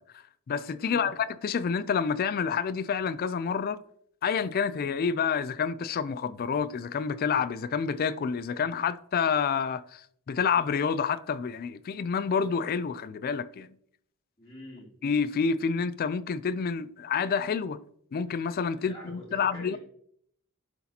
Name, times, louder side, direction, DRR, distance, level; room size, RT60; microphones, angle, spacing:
voice 1, 0.5-3.8 4.2-13.7 15.0-17.8 18.1-19.8, left 6 dB, 40° left, 0.3 m, -28 dB
voice 2, 14.4-14.9 18.8-19.8, left 1 dB, 25° left, 2.7 m, -45 dB
11.5 x 4.0 x 2.8 m
head